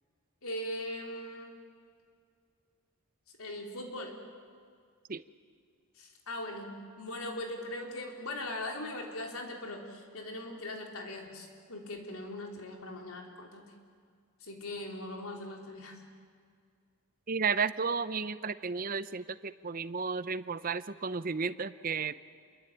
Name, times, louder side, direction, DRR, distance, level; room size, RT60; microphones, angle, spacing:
voice 1, 0.4-1.6 3.4-4.1 6.0-13.6 14.4-16.0, left 1 dB, 80° left, 2 dB, 4.2 m, -40 dB
voice 2, 17.3-22.1, right 5 dB, 40° right, 14 dB, 0.7 m, -33 dB
28.0 x 22.5 x 9.1 m, 2.1 s
head